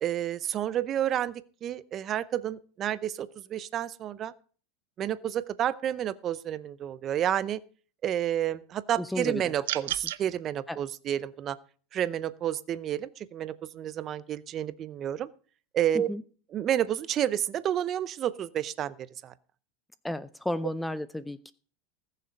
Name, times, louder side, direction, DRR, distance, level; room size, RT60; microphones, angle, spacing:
voice 1, 0.0-4.3 5.0-7.6 8.0-11.6 11.9-15.3 15.7-16.1 16.5-19.3, right 10 dB, 35° right, 16 dB, 0.7 m, -30 dB
voice 2, 9.0-9.5 10.7-10.8 16.1-16.2 20.0-21.5, left 1 dB, 5° left, 16 dB, 0.5 m, -33 dB
sound 1, 9.6-10.2, right 14 dB, 80° right, 0.6 m, -32 dB
19.5 x 6.7 x 5.2 m, 0.41 s
supercardioid pair, 130°, 0 cm